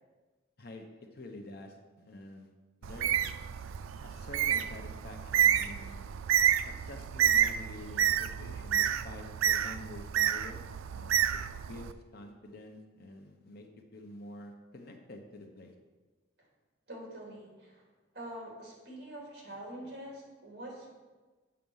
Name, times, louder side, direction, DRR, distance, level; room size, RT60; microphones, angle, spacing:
voice 1, 1.1-2.5 2.8-3.2 4.0-6.1 6.6-10.6 10.9-13.7 13.9-15.7 19.5-19.6, left 1 dB, 50° left, 3 dB, 0.9 m, -48 dB
Bird, 2.8-11.9, right 9 dB, 80° right, 0.4 m, -29 dB
voice 2, 16.9-17.8 18.1-20.9, right 1 dB, 55° right, -3 dB, 2.9 m, -45 dB
7.7 x 5.9 x 5.5 m, 1.3 s
head